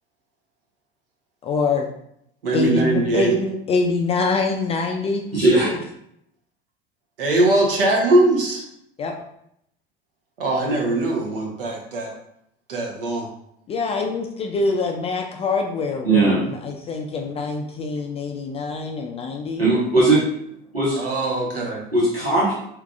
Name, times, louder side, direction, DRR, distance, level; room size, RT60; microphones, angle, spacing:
voice 1, 1.4-1.9 2.5-5.2 5.6-5.8 9.0-9.1 13.7-19.7, left 3 dB, 20° left, 3 dB, 0.3 m, -24 dB
voice 2, 2.4-3.3 7.2-8.6 10.4-12.1 12.7-13.3 21.0-21.8, right 2 dB, 70° right, 0 dB, 1.0 m, -21 dB
voice 3, 5.3-5.7 16.0-16.4 19.6-20.2 20.7-21.0 21.9-22.6, right 2 dB, 90° right, -8 dB, 1.3 m, -18 dB
4.6 x 3.2 x 2.4 m, 0.74 s
figure-of-eight pair, 70°, 29 cm